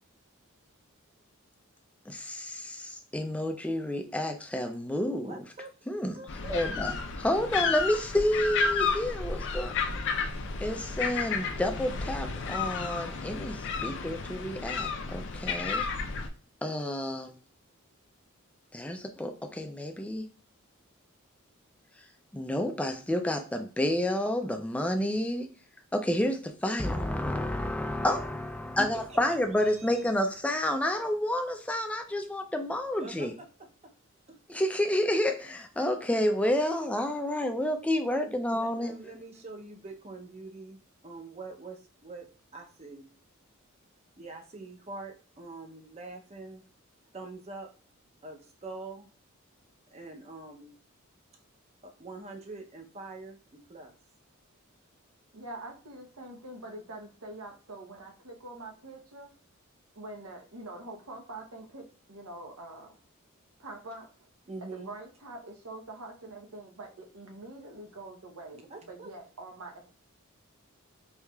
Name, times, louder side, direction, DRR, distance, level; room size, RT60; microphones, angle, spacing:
voice 1, 2.1-5.4 5.9-6.2 6.5-9.7 10.6-15.9 16.6-17.3 18.7-20.3 22.3-25.5 25.9-33.3 34.5-38.9, left 1 dB, 5° left, 5 dB, 0.4 m, -30 dB
voice 2, 5.2-5.7 6.1-6.6 28.8-29.2 29.6-30.1 33.0-33.9 34.3-34.4 38.5-42.3 42.5-43.1 44.2-46.6 47.1-47.7 48.2-49.1 49.9-50.7 51.8-53.9 64.5-64.9 68.5-69.1, right 3 dB, 30° right, 3 dB, 0.7 m, -44 dB
sound 1, 6.3-16.3, left 5 dB, 60° left, 0.5 m, -32 dB
voice 3, 55.3-59.3 60.0-63.0 63.6-64.1 64.6-69.9, right 2 dB, 85° right, 2 dB, 0.9 m, -45 dB
4.6 x 2.8 x 2.3 m, 0.38 s
head